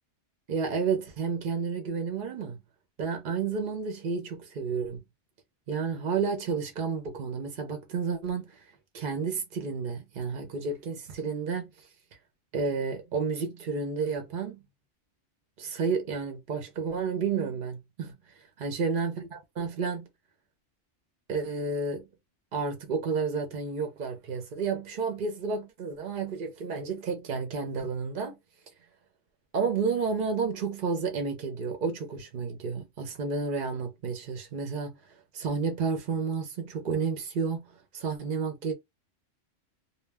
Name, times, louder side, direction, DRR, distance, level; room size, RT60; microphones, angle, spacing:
voice 1, 0.5-2.6 3.0-5.0 5.7-8.6 8.9-11.7 12.5-14.6 15.6-18.1 18.6-19.3 19.6-20.1 21.3-22.1 22.5-28.4 29.5-37.7 37.9-38.7, right 5 dB, 55° right, 0.6 m, -31 dB
2.2 x 2.1 x 3.3 m
omnidirectional pair, 1.2 m